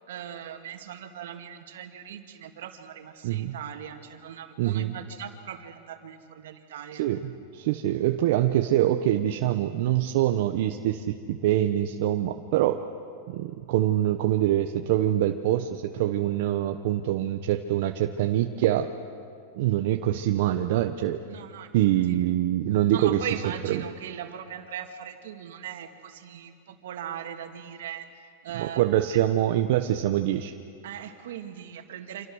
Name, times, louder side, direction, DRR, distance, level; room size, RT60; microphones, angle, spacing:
voice 1, 0.0-7.1 21.3-21.7 22.1-22.2 22.9-28.1 28.4-28.8 29.1-29.2 30.8-32.3, right 9 dB, 80° right, 5 dB, 2.6 m, -39 dB
voice 2, 3.2-3.6 4.6-4.9 7.0-12.8 13.3-18.9 19.5-21.2 21.7-23.3 23.7-23.8 28.5-30.5, right 12 dB, 60° right, 5 dB, 1.1 m, -24 dB
29.5 x 27.0 x 6.5 m, 2.4 s
supercardioid pair, 140°, 0 cm